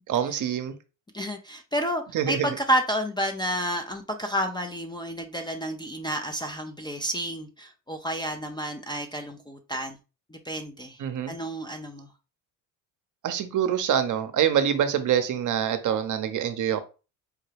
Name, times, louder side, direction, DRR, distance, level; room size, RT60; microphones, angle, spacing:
voice 1, 0.1-0.7 2.1-2.5 11.0-11.3 13.2-16.8, right 9 dB, 45° right, 9 dB, 0.7 m, -25 dB
voice 2, 1.1-10.0 10.3-11.0 11.3-12.1, equal, 10° left, 5 dB, 0.4 m, -30 dB
4.8 x 2.2 x 3.3 m, 0.32 s
supercardioid pair, 80°, 42 cm